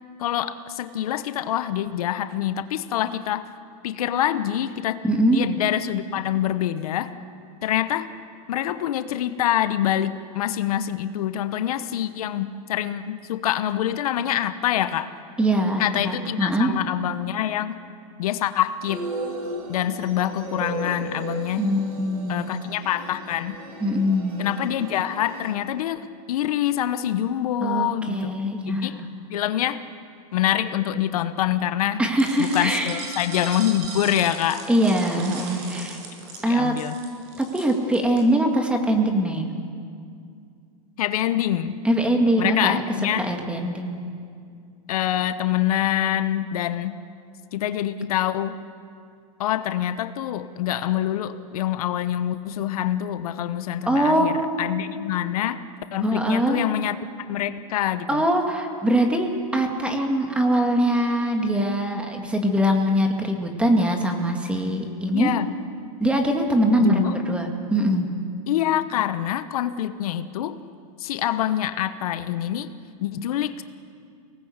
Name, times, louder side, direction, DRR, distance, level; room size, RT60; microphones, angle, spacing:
voice 1, 0.2-3.5 3.8-5.0 5.3-7.1 7.6-8.1 8.5-15.1 15.8-17.8 18.2-19.1 19.7-21.7 22.3-23.6 24.4-28.4 28.7-29.0 29.3-29.8 30.3-32.0 32.4-34.7 36.5-36.9 41.0-41.8 42.4-43.3 44.9-47.0 47.5-48.6 49.4-55.6 55.9-57.0 57.3-58.2 65.1-65.5 66.8-67.2 68.5-70.6 71.0-72.7 73.0-73.6, left 11 dB, 75° left, 11 dB, 1.0 m, -25 dB
voice 2, 5.0-5.4 15.4-16.7 21.6-22.5 23.8-24.4 27.6-29.1 32.0-33.0 34.7-36.0 36.4-36.7 37.4-39.5 41.8-42.8 43.2-44.0 53.9-54.6 56.0-56.6 58.1-65.3 66.0-68.1, equal, 5° right, 3 dB, 2.1 m, -22 dB
sound 1, 18.9-25.5, right 2 dB, 85° right, 4.5 m, -35 dB
sound 2, 32.2-38.2, right 3 dB, 50° right, 6.8 m, -38 dB
24.0 x 18.5 x 8.1 m, 2.3 s
supercardioid pair, 140°, 19 cm